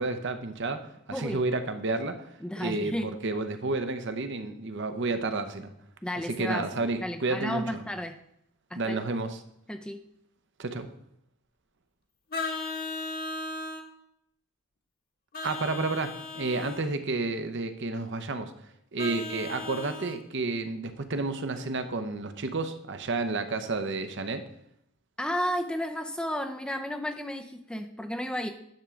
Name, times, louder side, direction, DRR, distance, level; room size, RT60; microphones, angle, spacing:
voice 1, 0.0-2.2 2.6-5.7 6.3-7.8 8.7-9.4 10.6-10.9 15.4-18.5 18.9-24.5, right 3 dB, 55° right, 9 dB, 0.8 m, -31 dB
voice 2, 1.1-1.4 2.4-3.1 6.0-6.6 7.0-8.2 8.7-9.0 9.7-10.0 25.2-28.5, equal, 5° left, 5 dB, 0.5 m, -32 dB
Vehicle horn car horn honking, 12.3-13.9 15.3-16.8 19.0-20.2, left 3 dB, 40° left, 1.2 m, -36 dB
10.5 x 3.7 x 7.0 m, 0.75 s
head